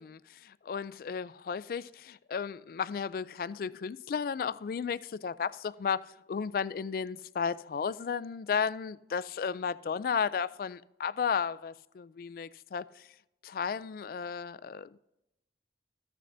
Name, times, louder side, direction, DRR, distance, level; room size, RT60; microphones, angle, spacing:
voice 1, 0.0-13.1 13.4-15.0, left 6 dB, 55° left, 0.3 m, -34 dB
14.0 x 6.6 x 2.6 m
head